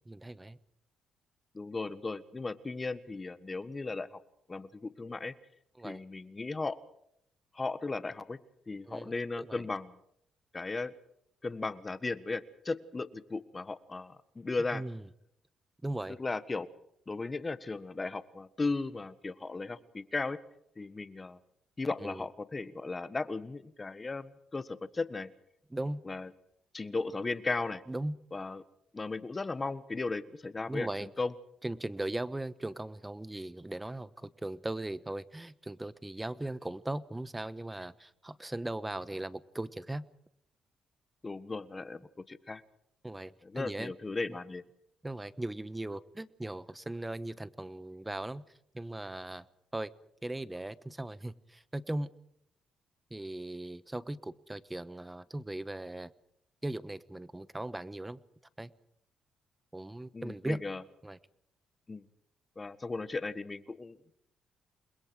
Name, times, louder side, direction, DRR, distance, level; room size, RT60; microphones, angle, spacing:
voice 1, 0.1-0.6 5.8-6.0 8.9-9.6 14.7-15.0 15.8-16.2 22.0-22.2 25.7-26.0 27.9-28.2 30.7-31.1 31.6-40.1 43.0-43.9 45.0-48.4 48.7-49.4 49.7-49.9 50.2-52.1 53.1-56.1 56.6-58.2 58.6-58.7 59.7-60.6 61.0-61.2, right 1 dB, 10° right, 16 dB, 1.1 m, -38 dB
voice 2, 1.5-4.2 4.5-5.3 5.8-6.8 7.5-8.4 8.7-10.0 10.5-10.9 11.4-14.8 16.2-16.7 17.1-20.4 20.8-21.4 21.8-25.3 26.0-26.3 26.7-27.8 28.3-28.6 28.9-31.3 41.2-42.6 43.4-44.6 60.1-60.8 61.9-62.0 62.6-64.0, left 3 dB, 25° left, 13 dB, 1.5 m, -36 dB
28.5 x 21.5 x 4.8 m, 0.74 s
cardioid pair, 90°, 0 cm